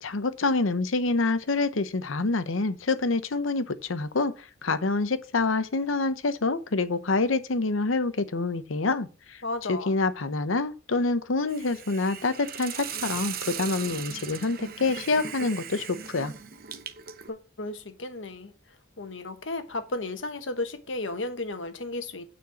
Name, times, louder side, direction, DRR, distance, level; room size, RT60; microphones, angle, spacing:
voice 1, 0.0-9.4 9.7-16.3, left 3 dB, 80° left, 0.9 m, -27 dB
voice 2, 9.4-9.9 17.3-22.2, left 2 dB, 65° left, 1.2 m, -34 dB
Hiss, 11.5-17.3, right 8 dB, 50° right, 0.8 m, -38 dB
9.4 x 4.4 x 7.0 m
head